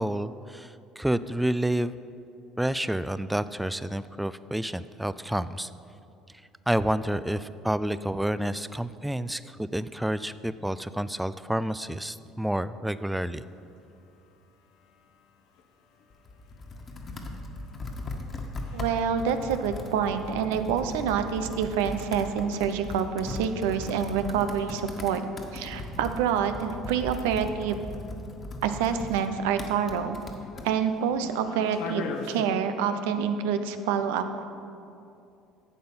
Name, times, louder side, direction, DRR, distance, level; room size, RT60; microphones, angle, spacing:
voice 1, 0.0-1.9 2.6-5.7 6.7-13.4, right 1 dB, 5° right, 14 dB, 0.4 m, -29 dB
sound 1, 12.9-32.4, left 4 dB, 70° left, 1.0 m, -47 dB
Computer keyboard, 16.1-30.7, left 2 dB, 40° left, 1.5 m, -39 dB
voice 2, 18.7-25.2 25.5-27.8 28.6-30.2 30.6-34.4, right 7 dB, 85° right, 9 dB, 0.7 m, -27 dB
12.0 x 7.8 x 5.6 m, 2.6 s
hypercardioid pair, 75°, 0 cm